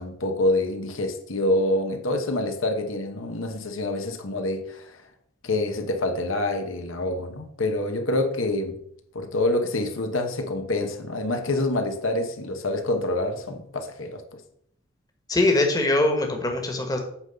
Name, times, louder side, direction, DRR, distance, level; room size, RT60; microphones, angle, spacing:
voice 1, 0.0-5.0 5.4-8.8 9.1-14.2, left 2 dB, 85° left, 5 dB, 1.1 m, -26 dB
voice 2, 15.3-17.0, left 2 dB, 20° left, 3 dB, 1.3 m, -22 dB
8.7 x 3.9 x 6.7 m, 0.71 s
head